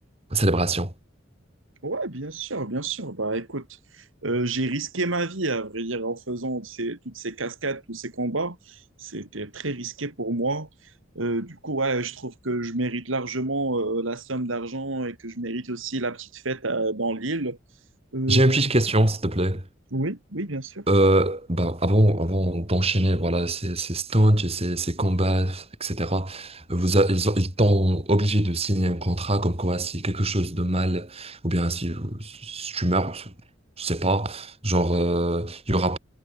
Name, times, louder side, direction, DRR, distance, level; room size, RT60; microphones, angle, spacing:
voice 1, 0.3-0.9 18.3-19.6 20.9-33.3 33.8-36.0, right 1 dB, 30° right, 5.6 m, -23 dB
voice 2, 1.8-3.7 3.9-10.7 11.1-17.6 18.1-18.5 19.9-20.8, right 2 dB, 85° right, 3.1 m, -29 dB
head